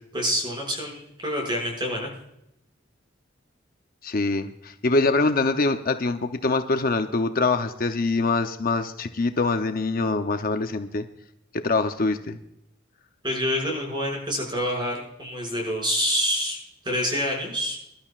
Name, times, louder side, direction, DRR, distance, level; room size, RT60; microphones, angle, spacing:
voice 1, 0.1-2.1 13.2-16.6 16.8-17.8, equal, 25° right, -1 dB, 6.0 m, -27 dB
voice 2, 4.0-11.0 11.5-12.4, left 3 dB, 45° left, 7 dB, 0.7 m, -24 dB
24.5 x 12.0 x 2.4 m, 0.83 s
head